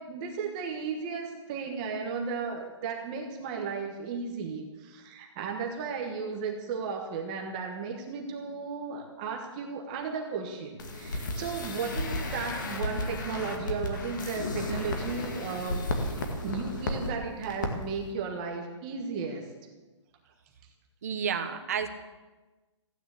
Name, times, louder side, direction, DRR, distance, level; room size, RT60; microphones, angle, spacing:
voice 1, 0.0-19.4, right 5 dB, 15° right, 1 dB, 1.2 m, -35 dB
sound 1, 10.8-17.1 17.4-17.7 18.0-18.1, left 2 dB, 40° left, 2.0 m, -33 dB
voice 2, 21.0-21.9, right 7 dB, 30° right, 7 dB, 1.2 m, -30 dB
15.5 x 10.0 x 8.3 m, 1.2 s
hypercardioid pair, 180°, 15 cm